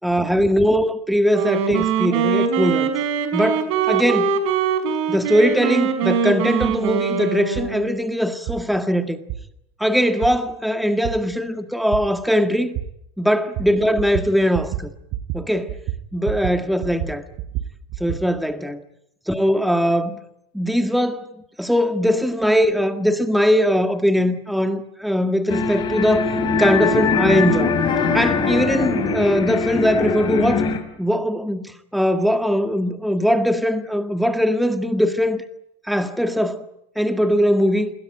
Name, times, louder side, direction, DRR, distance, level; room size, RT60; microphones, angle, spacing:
voice 1, 0.0-2.9 3.3-4.4 5.1-9.2 9.8-12.8 13.2-14.9 15.3-15.8 16.1-17.2 18.0-18.8 19.3-20.2 20.5-21.3 21.6-27.7 28.1-30.6 31.0-35.4 35.9-36.7 36.9-37.9, equal, ahead, 1.7 m, -20 dB
Wind instrument woodwind instrument, 1.3-8.1, right 6 dB, 80° right, 5.2 m, -22 dB
sound 1, 6.6-6.8 7.5-7.7 8.5-8.6 9.3-9.4 10.2-10.3 11.0-11.1 11.9-12.0 12.7-12.9 13.6-13.7 14.0-14.3 14.5-14.8 15.1-15.4 15.7-16.6 16.8-18.2, right 13 dB, 55° right, 5.1 m, -27 dB
sound 2, 25.5-30.8, left 5 dB, 30° left, 6.3 m, -21 dB
28.0 x 21.5 x 8.9 m
supercardioid pair, 135°, 15 cm